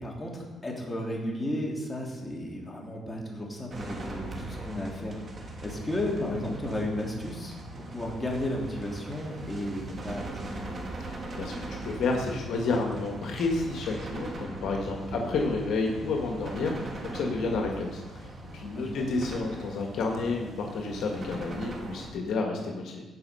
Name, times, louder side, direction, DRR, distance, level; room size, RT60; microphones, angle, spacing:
voice 1, 0.0-5.2 5.6-7.6 7.9-10.7 15.1-15.2 18.7-19.1, left 1 dB, 15° left, -2 dB, 2.9 m, -33 dB
sound 1, 3.7-22.1, right 2 dB, 40° right, 2.2 m, -40 dB
voice 2, 11.0-16.7 17.0-23.0, left 3 dB, 70° left, 1 dB, 1.5 m, -30 dB
15.5 x 5.6 x 5.5 m, 1.2 s
cardioid pair, 90°, 0 cm